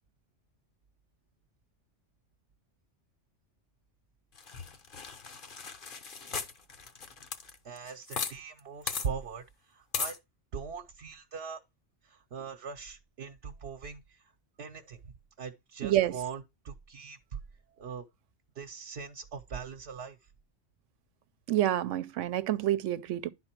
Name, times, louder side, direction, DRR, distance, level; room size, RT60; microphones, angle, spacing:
sound 1, 4.4-8.3 8.6-8.7 8.9-9.1 9.9-10.2, left 5 dB, 50° left, 1.0 m, -37 dB
voice 1, 7.6-10.2 10.5-11.6 12.0-14.2 14.6-15.0 15.4-17.4 17.8-18.0 18.6-20.2, right 6 dB, 65° right, 1.1 m, -41 dB
voice 2, 15.8-16.1 21.5-23.3, right 13 dB, 90° right, 1.0 m, -28 dB
10.5 x 4.2 x 4.4 m
omnidirectional pair, 1.2 m